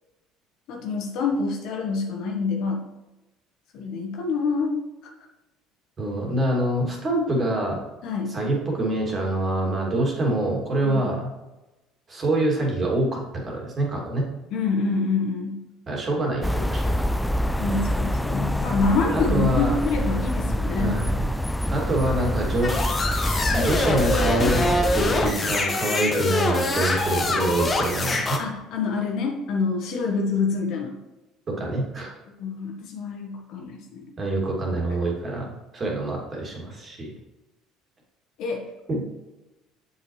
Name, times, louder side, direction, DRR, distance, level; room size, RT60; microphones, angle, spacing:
voice 1, 0.7-2.9 3.7-4.8 8.0-8.3 10.8-11.1 14.5-15.6 17.6-21.0 28.4-31.0 32.4-34.0 38.4-38.6, left 4 dB, 65° left, 2 dB, 1.3 m, -26 dB
voice 2, 6.0-7.8 8.3-11.3 12.1-14.3 15.9-17.2 19.1-19.7 20.8-21.3 21.7-22.7 23.5-24.7 24.9-28.4 31.5-32.2 34.2-37.1 38.9-39.0, right 1 dB, 40° right, -1 dB, 2.5 m, -25 dB
sound 1, 16.4-25.3, equal, 5° left, 0.3 m, -26 dB
sound 2, 22.6-28.4, left 2 dB, 30° left, 1.2 m, -24 dB
7.4 x 5.6 x 3.2 m, 1.0 s
hypercardioid pair, 65°, 0 cm